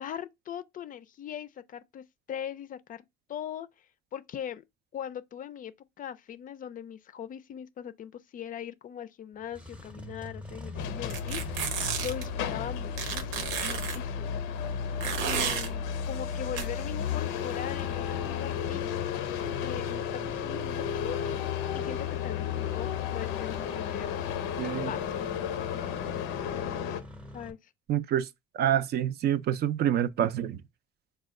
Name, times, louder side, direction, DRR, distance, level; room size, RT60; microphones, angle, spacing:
voice 1, 0.0-3.7 4.1-4.6 4.9-11.4 12.0-14.4 15.2-18.8 19.6-21.2 21.7-24.2 24.9-25.3 27.3-27.7, left 9 dB, 40° left, 0.4 m, -40 dB
Engine starting, 9.4-27.5, left 1 dB, 5° right, 0.7 m, -46 dB
sound 1, 10.7-27.0, left 8 dB, 85° left, 0.6 m, -33 dB
sound 2, 11.1-12.3 13.0-14.0 15.0-15.7 16.6-16.7, right 7 dB, 80° right, 0.8 m, -32 dB
voice 2, 24.6-24.9 27.9-28.3 28.5-30.6, right 10 dB, 50° right, 0.4 m, -27 dB
4.2 x 2.3 x 3.6 m
cardioid pair, 100°, 20 cm